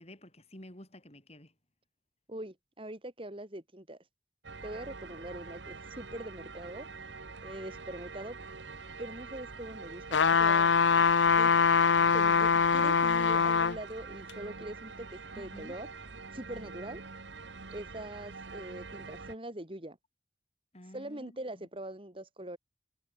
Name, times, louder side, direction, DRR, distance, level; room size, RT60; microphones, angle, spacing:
voice 1, 0.0-1.5 15.4-15.8 20.7-21.7, left 1 dB, 35° left, 5.0 m, -51 dB
voice 2, 2.3-4.1 4.6-7.1 7.4-8.4 9.0-10.8 11.3-11.6 12.1-16.1 16.3-17.0 17.7-20.0 20.8-22.6, right 1 dB, 30° right, 3.0 m, -43 dB
sound 1, 4.4-19.4, right 4 dB, 85° right, 1.7 m, -45 dB
sound 2, 10.1-13.8 14.3-14.4, left 6 dB, 90° left, 0.7 m, -23 dB
head